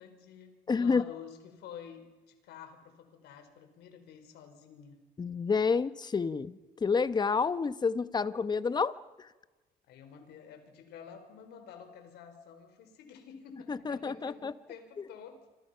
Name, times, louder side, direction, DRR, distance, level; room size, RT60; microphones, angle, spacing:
voice 1, 0.0-4.9 9.8-15.4, left 7 dB, 80° left, 7 dB, 4.7 m, -50 dB
voice 2, 0.7-1.0 5.2-9.3 13.7-14.5 15.0-15.1, left 5 dB, 25° left, 14 dB, 1.1 m, -29 dB
27.5 x 27.0 x 5.8 m, 1.2 s
cardioid pair, 110°, 17 cm